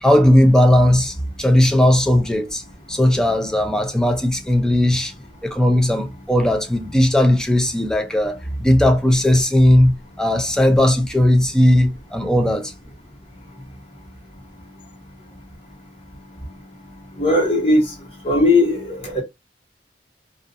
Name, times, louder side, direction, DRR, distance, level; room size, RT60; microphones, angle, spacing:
voice 1, 0.0-2.6 2.9-5.1 5.4-12.7, left 1 dB, 5° left, 0.4 m, -17 dB
voice 2, 17.2-17.8 18.2-19.2, left 2 dB, 35° left, 1.2 m, -17 dB
2.4 x 2.4 x 2.5 m
head